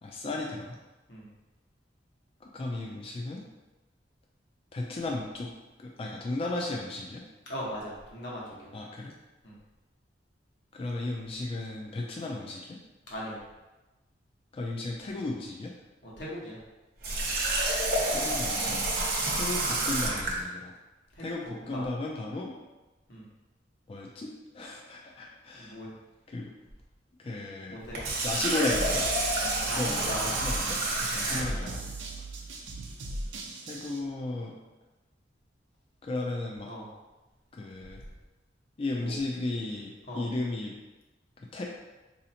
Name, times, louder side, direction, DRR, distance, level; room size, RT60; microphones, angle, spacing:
voice 1, 0.0-0.8 2.4-3.4 4.7-5.5 5.8-7.2 8.7-9.1 10.7-12.8 14.5-15.7 18.1-18.8 19.3-20.7 21.2-22.5 23.9-25.8 26.3-26.5 27.2-27.8 28.2-29.1 29.8-30.8 31.1-32.0 33.7-34.5 36.0-36.7 37.5-38.0 38.8-40.7 41.5-41.6, left 2 dB, 30° left, -1 dB, 0.3 m, -35 dB
voice 2, 7.5-8.7 9.4-9.5 13.1-13.4 16.0-16.6 19.2-19.3 21.1-21.3 21.6-21.8 23.1-23.2 25.5-25.9 27.7-28.0 29.6-30.4 31.2-31.8 36.7-36.9 39.0-39.1 40.1-40.3, equal, 65° left, -5 dB, 1.1 m, -39 dB
Water tap faucet, 17.0-20.4 27.8-31.7, right 2 dB, 55° right, 0.7 m, -29 dB
sound 1, 28.7-34.0, right 1 dB, 90° right, 0.5 m, -38 dB
4.1 x 2.7 x 2.7 m, 1.1 s
head